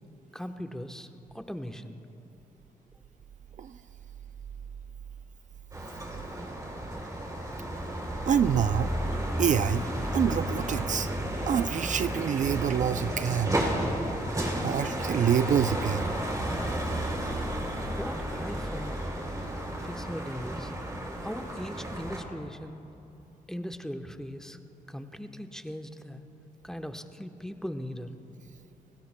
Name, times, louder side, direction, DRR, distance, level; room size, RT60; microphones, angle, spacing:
voice 1, 0.3-1.1 1.3-2.0 17.9-19.0 19.8-20.7 21.2-22.8 23.5-24.6 24.9-26.2 26.6-28.1, equal, 5° left, 6 dB, 1.0 m, -39 dB
sound 1, 5.7-22.2, right 1 dB, 25° right, 3.2 m, -32 dB
voice 2, 8.3-8.9 9.4-9.9 10.1-11.1 11.5-13.6 14.6-16.1, right 8 dB, 55° right, 12 dB, 0.4 m, -26 dB
29.5 x 17.0 x 2.2 m, 2.8 s
cardioid pair, 65°, 15 cm